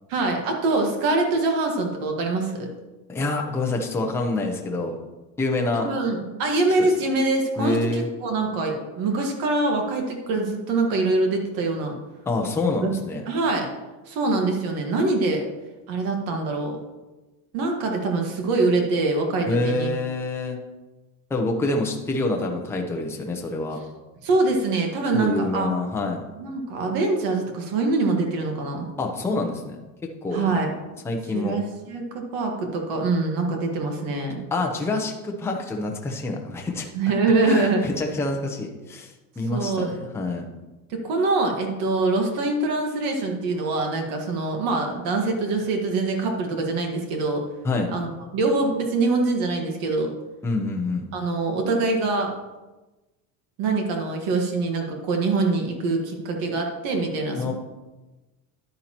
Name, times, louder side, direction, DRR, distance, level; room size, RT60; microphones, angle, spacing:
voice 1, 0.1-2.7 5.7-11.9 12.8-12.9 13.3-13.7 14.1-15.4 15.9-16.8 17.5-19.9 24.2-25.7 26.3-28.9 30.3-30.7 31.3-34.4 36.9-37.8 39.5-40.0 40.9-47.4 47.9-50.1 51.1-52.3 53.6-57.5, right 3 dB, 60° right, 2 dB, 1.6 m, -24 dB
voice 2, 3.1-4.9 5.4-5.9 6.8-6.9 7.6-8.1 12.3-13.2 19.5-20.6 21.3-23.8 25.1-26.2 29.0-29.8 30.2-30.6 31.0-31.6 34.5-36.9 37.4-40.5 47.6-47.9 50.4-51.1 57.4-57.5, left 2 dB, 5° left, 1 dB, 0.6 m, -26 dB
10.5 x 9.2 x 2.9 m, 1.1 s
cardioid pair, 180°, 39 cm